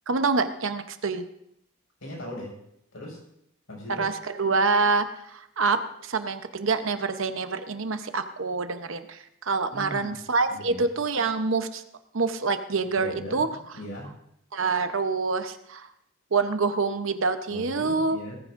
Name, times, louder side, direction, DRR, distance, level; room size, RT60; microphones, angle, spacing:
voice 1, 0.1-1.2 4.0-11.8 12.1-13.5 14.5-15.9 16.3-18.2, right 4 dB, 70° right, 9 dB, 0.9 m, -26 dB
voice 2, 2.0-2.5 2.9-3.2 3.7-4.1 9.7-10.1 10.5-10.8 13.0-14.1 17.5-18.4, left 1 dB, 80° left, -3 dB, 6.1 m, -39 dB
18.0 x 14.5 x 2.6 m, 0.76 s
head